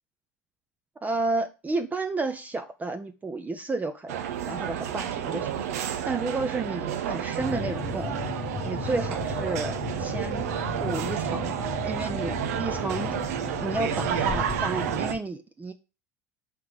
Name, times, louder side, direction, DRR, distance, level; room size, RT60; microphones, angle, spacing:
voice 1, 1.0-5.7 6.0-8.2 8.6-10.5 10.8-13.2 13.6-15.7, right 3 dB, 20° right, 0.7 m, -32 dB
sound 1, 4.1-15.1, right 9 dB, 75° right, 0.8 m, -30 dB
sound 2, 7.4-15.2, left 8 dB, 30° left, 0.4 m, -36 dB
5.9 x 4.8 x 6.6 m
hypercardioid pair, 80°, 8 cm